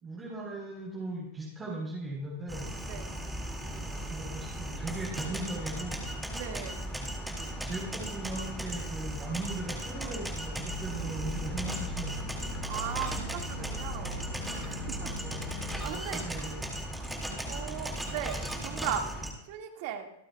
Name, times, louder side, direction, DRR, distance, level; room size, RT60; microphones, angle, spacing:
voice 1, 0.0-2.7 3.7-6.1 7.3-12.3 15.2-15.4 15.8-16.6, right 2 dB, 20° right, -5 dB, 3.8 m, -38 dB
sound 1, 2.5-19.3, right 1 dB, 5° right, 2.2 m, -37 dB
voice 2, 6.3-6.9 12.6-15.5 15.8-16.3 17.4-19.1 19.4-20.1, right 9 dB, 55° right, 3 dB, 1.8 m, -38 dB
sound 2, 10.7-15.8, left 2 dB, 65° left, 3.1 m, -39 dB
25.0 x 8.8 x 2.3 m, 0.80 s
supercardioid pair, 135°, 0 cm